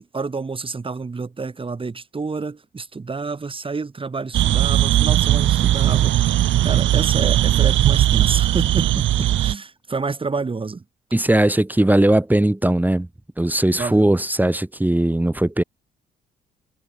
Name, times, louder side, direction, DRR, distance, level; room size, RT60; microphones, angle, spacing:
voice 1, 0.0-6.1 6.6-10.8 13.7-14.2, right 4 dB, 25° right, 2.3 m, -29 dB
sound 1, 4.3-9.5, right 13 dB, 75° right, 1.3 m, -18 dB
voice 2, 11.1-13.1 13.4-15.6, right 1 dB, 10° right, 3.3 m, -18 dB
cardioid pair, 90°, 20 cm